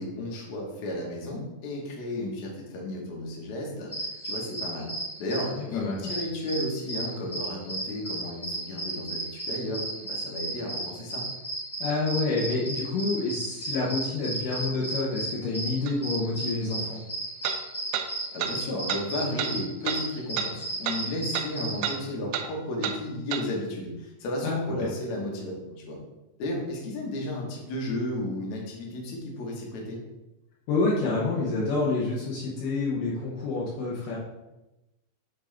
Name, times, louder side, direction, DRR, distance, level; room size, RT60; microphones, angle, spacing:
voice 1, 0.0-4.9 5.2-11.2 18.3-25.5 25.8-26.0 26.4-30.0, left 1 dB, 65° left, -1 dB, 1.8 m, -33 dB
sound 1, 3.9-21.9, right 2 dB, 25° left, 1.7 m, -34 dB
voice 2, 5.6-6.1 11.8-17.0 24.4-24.9 30.7-34.2, left 3 dB, 85° left, -4 dB, 1.9 m, -28 dB
sound 2, 15.9-16.0 17.4-17.6 17.9-18.1 18.4-18.5 18.9-19.0 19.4-19.5 19.9-20.0 20.4-20.5 20.8-21.0 21.3-21.5 21.8-22.0 22.3-22.5 22.8-23.0 23.3-23.4, right 9 dB, 80° right, 2.5 m, -29 dB
9.4 x 3.8 x 3.4 m, 0.99 s
omnidirectional pair, 5.1 m